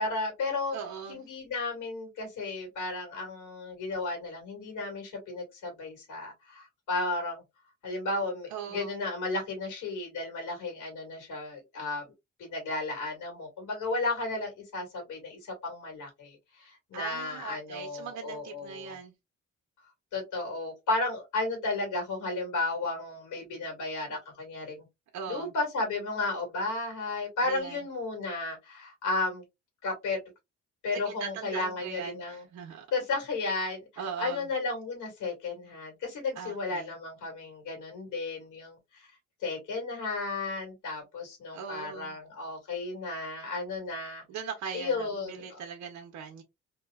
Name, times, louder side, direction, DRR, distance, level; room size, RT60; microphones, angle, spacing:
voice 1, 0.0-0.8 1.1-7.4 7.8-12.0 12.4-18.9 20.1-24.8 25.3-29.4 29.8-30.2 30.8-32.4 32.9-33.9 34.2-39.1 39.4-44.2 44.7-45.6, left 3 dB, 80° left, 1.9 m, -33 dB
voice 2, 0.7-1.2 8.5-8.9 16.9-19.1 25.1-25.5 27.4-27.8 30.9-32.9 34.0-34.5 36.4-36.9 41.5-42.2 44.3-46.4, right 7 dB, 70° right, 0.8 m, -40 dB
2.9 x 2.7 x 2.3 m
cardioid pair, 90°, 30 cm